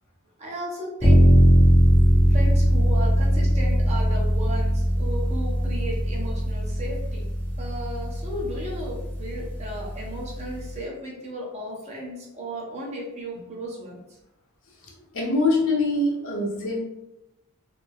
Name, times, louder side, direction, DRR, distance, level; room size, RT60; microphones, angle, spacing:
voice 1, 0.4-1.2 2.3-7.2 7.6-14.2, equal, 30° right, -3 dB, 0.7 m, -35 dB
sound 1, 1.0-10.8, equal, 10° left, 0.6 m, -20 dB
voice 2, 15.1-16.8, left 2 dB, 60° left, -1 dB, 0.7 m, -23 dB
3.1 x 2.0 x 2.3 m, 0.90 s
head